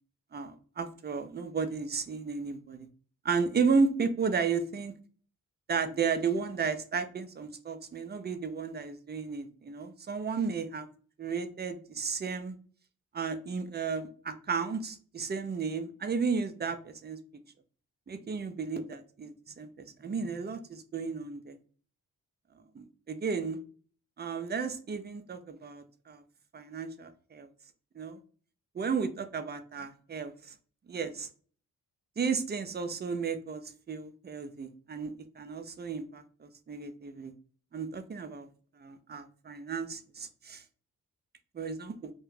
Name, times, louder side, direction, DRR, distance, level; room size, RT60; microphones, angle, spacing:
voice 1, 0.3-2.9 3.2-4.9 5.7-10.9 11.2-12.6 13.1-17.2 18.1-21.6 22.7-23.6 24.2-26.2 26.5-27.5 28.0-28.2 28.7-30.5 30.9-31.3 32.2-37.3 37.7-38.5 38.8-40.6 41.5-42.1, right 5 dB, 25° right, 8 dB, 0.5 m, -33 dB
2.3 x 2.2 x 3.2 m, 0.43 s
supercardioid pair, 45°, 37 cm